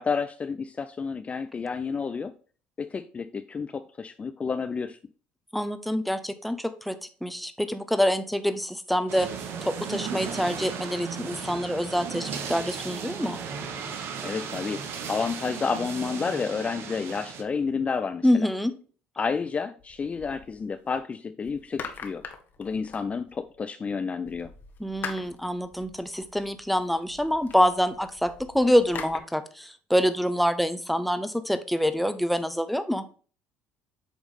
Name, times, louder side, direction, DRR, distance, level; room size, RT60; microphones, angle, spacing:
voice 1, 0.0-2.3 2.8-5.0 14.2-18.5 19.2-22.2 22.6-24.5, left 5 dB, 30° left, 0.4 m, -30 dB
voice 2, 5.5-9.3 9.6-13.4 18.2-18.7 24.8-33.0, equal, ahead, 0.7 m, -26 dB
sound 1, 9.1-17.4, right 6 dB, 60° right, 1.0 m, -36 dB
sound 2, 19.8-21.0 21.4-23.6 24.2-29.2, left 6 dB, 50° left, 1.2 m, -43 dB
8.1 x 3.1 x 4.1 m
supercardioid pair, 75°, 4 cm